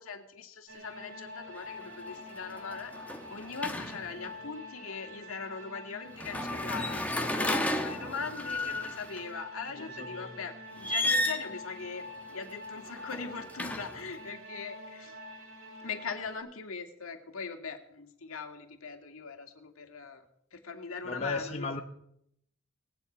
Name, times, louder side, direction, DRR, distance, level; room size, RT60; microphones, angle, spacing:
voice 1, 0.0-2.9 3.3-12.0 12.3-15.2 15.8-20.2 20.5-21.7, left 5 dB, 80° left, 4 dB, 2.2 m, -40 dB
sound 1, 0.7-16.4, left 1 dB, 85° right, 4.6 m, -46 dB
sound 2, 1.5-1.8 2.2-4.3 6.1-9.2 10.7-11.6 12.8-14.1, left 1 dB, 5° left, 1.5 m, -33 dB
voice 2, 21.1-21.8, left 3 dB, 30° left, 3 dB, 1.3 m, -34 dB
19.5 x 8.3 x 8.4 m, 0.74 s
head